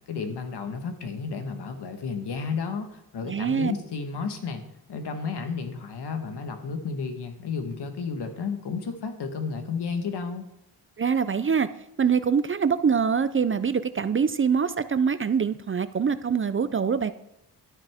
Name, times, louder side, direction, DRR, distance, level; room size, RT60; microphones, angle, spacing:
voice 1, 0.1-4.6 4.9-10.4, left 5 dB, 75° left, 7 dB, 1.5 m, -32 dB
voice 2, 3.2-3.7 11.0-11.7 12.0-17.1, right 6 dB, 30° right, 13 dB, 0.5 m, -24 dB
11.5 x 8.8 x 3.6 m, 0.82 s
cardioid pair, 80°, 41 cm